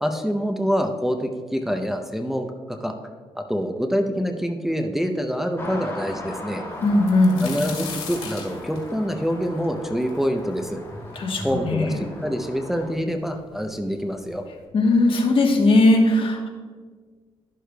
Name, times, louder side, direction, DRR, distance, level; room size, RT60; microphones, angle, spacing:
voice 1, 0.0-2.9 3.3-6.6 7.4-10.8 11.4-14.4, equal, 5° right, 4 dB, 0.6 m, -26 dB
sound 1, 5.6-12.9, left 1 dB, 20° left, 1.9 m, -38 dB
sound 2, 6.8-10.6 11.1-11.2 12.0-12.1 12.4-13.0 13.9-14.0 14.4-14.6, left 5 dB, 75° left, 1.9 m, -37 dB
voice 2, 6.8-7.5 11.1-12.0 14.7-16.5, left 2 dB, 55° left, 1 dB, 1.2 m, -18 dB
12.0 x 6.4 x 2.3 m, 1.5 s
cardioid pair, 90°, 10 cm